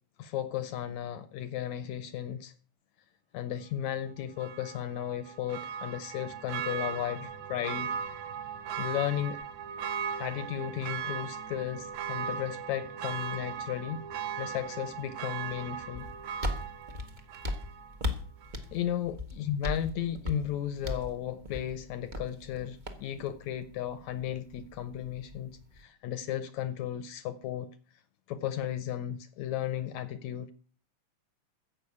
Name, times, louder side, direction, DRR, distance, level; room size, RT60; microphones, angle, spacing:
voice 1, 0.2-2.5 3.3-7.9 8.8-9.4 10.2-14.0 14.4-16.1 18.7-27.7 28.3-30.5, left 11 dB, 75° left, 1.8 m, -35 dB
Church bell, 4.4-18.0 18.4-18.5, right 7 dB, 70° right, 2.1 m, -38 dB
sound 1, 15.9-25.8, left 1 dB, 50° right, 0.5 m, -39 dB
15.0 x 5.8 x 8.5 m
omnidirectional pair, 3.8 m